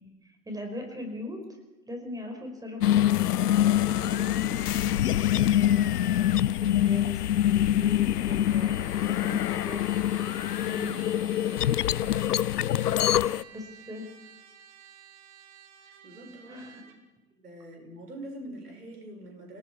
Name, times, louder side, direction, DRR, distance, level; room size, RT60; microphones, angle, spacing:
voice 1, 0.0-1.6 1.9-3.3 3.8-9.8 10.6-12.1 13.5-14.1 16.5-16.8, left 1 dB, 10° right, 3 dB, 5.5 m, -40 dB
sound 1, 2.8-13.4, left 12 dB, 80° left, 0.6 m, -25 dB
Trumpet, 8.5-17.0, right 9 dB, 35° right, 2.9 m, -52 dB
voice 2, 12.7-13.3 15.8-16.8 17.4-19.6, right 1 dB, 75° right, 3 dB, 5.7 m, -44 dB
29.5 x 18.5 x 4.8 m, 1.1 s
figure-of-eight pair, 95°, 46 cm